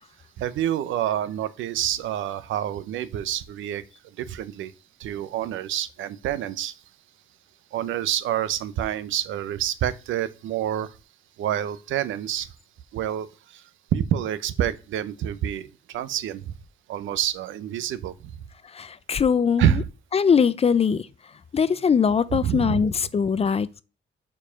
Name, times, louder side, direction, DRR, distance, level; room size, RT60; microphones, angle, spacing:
voice 1, 0.4-3.8 4.2-4.7 5.0-6.7 7.7-10.9 11.4-12.5 12.9-13.6 13.9-16.6 16.9-18.3 19.6-19.9 22.3-22.8, right 11 dB, 80° right, 0.7 m, -27 dB
voice 2, 18.7-19.7 20.1-21.1 21.5-23.8, left 6 dB, 30° left, 0.4 m, -21 dB
4.9 x 4.6 x 5.7 m
cardioid pair, 90°, 20 cm